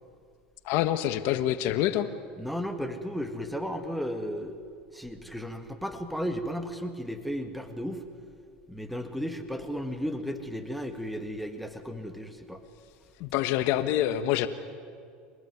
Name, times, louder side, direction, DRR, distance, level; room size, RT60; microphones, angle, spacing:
voice 1, 0.6-2.1 13.2-14.5, left 12 dB, 60° left, 11 dB, 1.3 m, -26 dB
voice 2, 2.4-4.6 4.9-8.0 8.7-12.6, equal, ahead, 6 dB, 1.9 m, -34 dB
25.5 x 19.0 x 9.5 m, 2.3 s
supercardioid pair, 115°, 5 cm